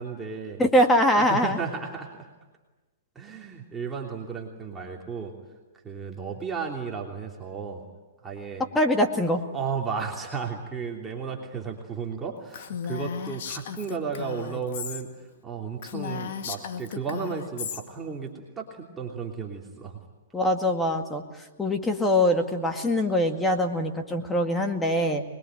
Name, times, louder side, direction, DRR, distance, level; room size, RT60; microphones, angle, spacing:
voice 1, 0.0-0.6 1.1-2.3 3.1-5.3 5.8-7.8 8.2-8.6 9.5-20.0, right 5 dB, 15° right, -1 dB, 3.1 m, -34 dB
voice 2, 0.6-1.6 8.7-9.4 20.3-21.2 21.6-25.2, left 1 dB, 10° left, 4 dB, 2.0 m, -23 dB
Female speech woman speaking, 12.5-15.0 15.4-15.5 15.8-17.8, left 7 dB, 60° left, 2.2 m, -35 dB
24.5 x 21.5 x 9.2 m, 1.2 s
hypercardioid pair, 130°, 0 cm